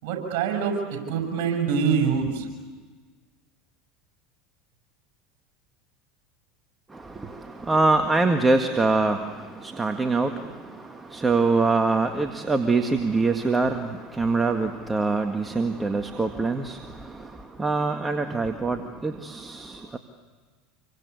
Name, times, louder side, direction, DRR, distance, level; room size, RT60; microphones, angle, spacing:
voice 1, 0.0-2.5, right 6 dB, 65° right, 3 dB, 7.2 m, -25 dB
voice 2, 6.9-20.0, right 3 dB, 15° right, 6 dB, 1.8 m, -24 dB
27.5 x 24.0 x 8.3 m, 1.4 s
hypercardioid pair, 85°, 0 cm